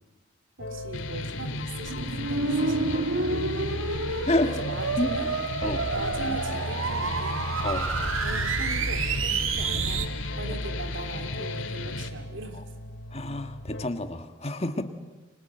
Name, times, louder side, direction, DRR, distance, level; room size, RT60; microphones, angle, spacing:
sound 1, 0.6-13.9, left 1 dB, 60° left, 2.6 m, -37 dB
voice 1, 0.6-3.3 4.4-5.3 5.9-7.5 8.2-12.7, right 2 dB, 70° right, 7 dB, 2.9 m, -40 dB
sound 2, 0.9-12.1, left 3 dB, 80° left, 2.0 m, -36 dB
sound 3, 1.9-10.1, right 4 dB, 90° right, 1.8 m, -29 dB
voice 2, 13.1-14.8, left 1 dB, 30° left, 8 dB, 1.6 m, -28 dB
29.5 x 24.5 x 8.0 m, 1.2 s
head